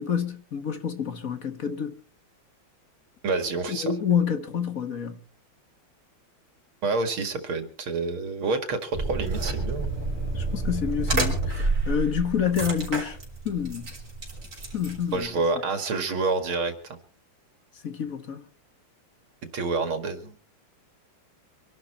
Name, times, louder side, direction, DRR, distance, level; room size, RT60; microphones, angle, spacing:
voice 1, 0.0-2.0 3.7-5.2 10.3-13.2 13.4-13.9 14.7-15.3 17.8-18.4, left 7 dB, 45° left, 1.7 m, -28 dB
voice 2, 3.2-3.9 6.8-9.9 15.1-16.7 19.5-20.3, right 3 dB, 85° right, 2.9 m, -28 dB
sound 1, 8.9-15.3, right 3 dB, 35° right, 4.3 m, -29 dB
25.0 x 11.5 x 4.4 m
omnidirectional pair, 2.2 m